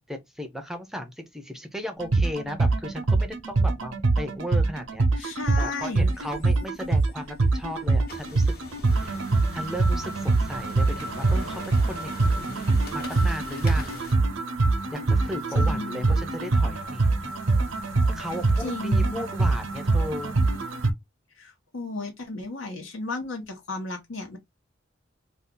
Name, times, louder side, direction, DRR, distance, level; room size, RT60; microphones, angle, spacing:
voice 1, 0.0-8.5 9.0-9.2 9.5-12.7 12.9-14.0 14.9-17.3 18.1-20.4, equal, ahead, 0.4 m, -36 dB
sound 1, 2.0-20.9, right 3 dB, 85° right, 0.6 m, -24 dB
voice 2, 5.2-6.1 15.5-16.1 18.6-19.2 21.4-24.4, left 3 dB, 90° left, 1.1 m, -34 dB
sound 2, 6.0-14.2, left 2 dB, 55° left, 0.9 m, -43 dB
2.6 x 2.3 x 3.6 m
head